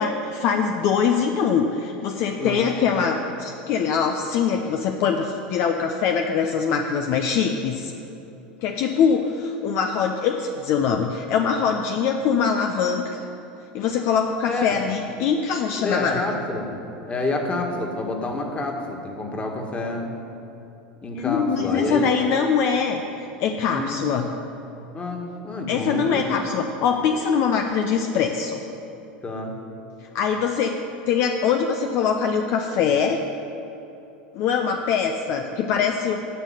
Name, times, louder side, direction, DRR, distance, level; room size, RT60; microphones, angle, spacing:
voice 1, 0.0-7.9 8.6-13.2 13.7-16.2 21.2-24.2 25.7-28.6 30.1-30.8 31.1-33.2 34.3-36.2, left 6 dB, 55° left, 4 dB, 0.8 m, -23 dB
voice 2, 2.4-2.7 14.4-14.8 15.8-16.7 17.1-20.1 21.0-22.1 23.7-24.0 24.9-26.4 29.2-29.6, left 2 dB, 25° left, 2 dB, 2.1 m, -28 dB
11.0 x 6.4 x 9.1 m, 2.9 s
hypercardioid pair, 100°, 5 cm